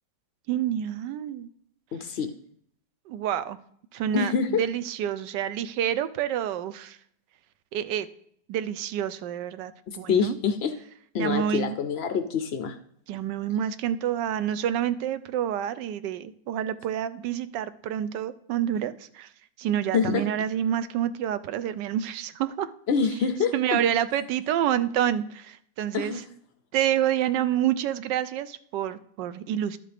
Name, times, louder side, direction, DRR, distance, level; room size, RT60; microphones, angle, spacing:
voice 1, 0.5-1.5 3.1-3.6 3.9-7.0 7.7-8.1 8.5-10.4 11.2-11.8 13.1-19.3 19.6-22.7 23.5-26.1 26.7-29.8, right 10 dB, 90° right, 14 dB, 1.3 m, -28 dB
voice 2, 1.9-2.3 4.1-4.6 9.9-10.7 11.1-12.7 19.9-20.2 22.9-23.8 25.9-26.2, left 6 dB, 75° left, 8 dB, 0.5 m, -26 dB
12.0 x 7.3 x 3.4 m, 0.65 s
omnidirectional pair, 1.8 m